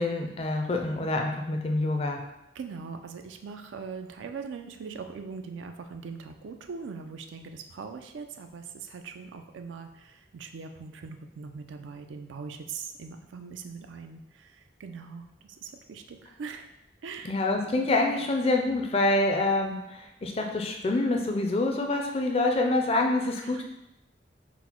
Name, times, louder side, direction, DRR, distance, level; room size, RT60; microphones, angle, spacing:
voice 1, 0.0-2.2 17.2-23.6, left 2 dB, 30° left, 3 dB, 0.4 m, -26 dB
voice 2, 2.5-16.7 17.0-17.4 23.4-23.6, right 5 dB, 85° right, 6 dB, 0.4 m, -41 dB
4.1 x 2.1 x 4.3 m, 0.88 s
head